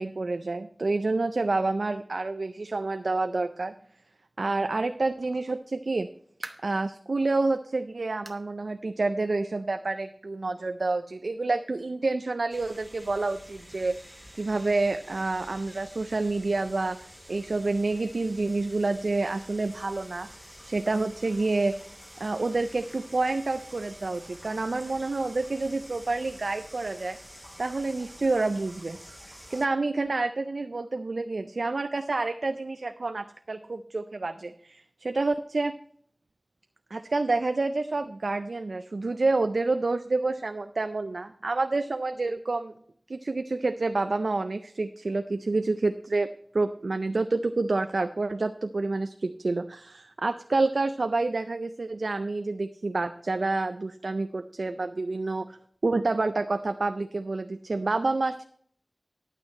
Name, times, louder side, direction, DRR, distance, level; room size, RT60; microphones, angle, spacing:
voice 1, 0.0-3.7 4.4-6.1 6.6-14.0 14.3-17.0 17.3-20.3 20.6-21.8 22.2-27.2 27.6-29.0 29.5-35.7 36.9-42.7 43.1-46.3 46.5-55.6 55.8-58.4, right 3 dB, 90° right, 9 dB, 0.4 m, -28 dB
sound 1, 5.8-6.9 7.4-7.5 8.2-8.5 8.8-8.9 9.4-9.5 10.6-10.7, right 2 dB, 50° right, 1.0 m, -44 dB
sound 2, 12.5-29.7, equal, 5° right, 0.6 m, -49 dB
9.8 x 8.8 x 4.2 m, 0.62 s
wide cardioid pair, 50°, 0 cm